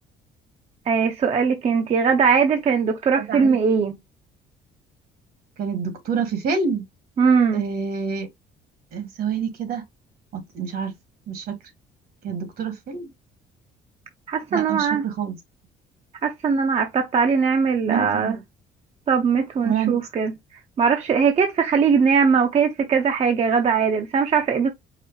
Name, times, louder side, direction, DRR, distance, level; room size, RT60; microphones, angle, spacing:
voice 1, 0.9-3.9 7.2-7.6 14.3-15.0 16.2-18.4 19.1-20.3 20.8-24.7, right 6 dB, 40° right, 0.6 m, -20 dB
voice 2, 3.2-3.6 5.6-6.8 7.5-8.3 8.9-9.8 10.3-10.9 11.3-11.5 12.2-13.1 14.5-15.4 17.9-18.4 19.6-20.0, right 6 dB, 65° right, 1.7 m, -27 dB
4.9 x 2.0 x 4.5 m
cardioid pair, 110°, 17 cm